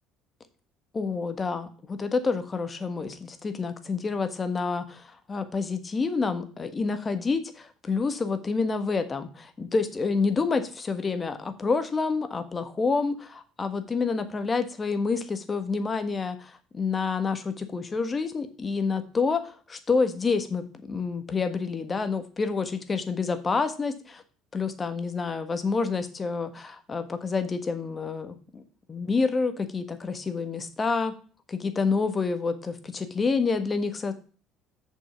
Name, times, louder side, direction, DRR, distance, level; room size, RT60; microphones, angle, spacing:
voice 1, 0.9-13.2 13.6-24.2 24.5-28.6 28.9-31.1 31.5-34.1, left 4 dB, 30° left, 9 dB, 1.5 m, -28 dB
6.9 x 5.5 x 5.9 m, 0.39 s
hypercardioid pair, 70°, 0 cm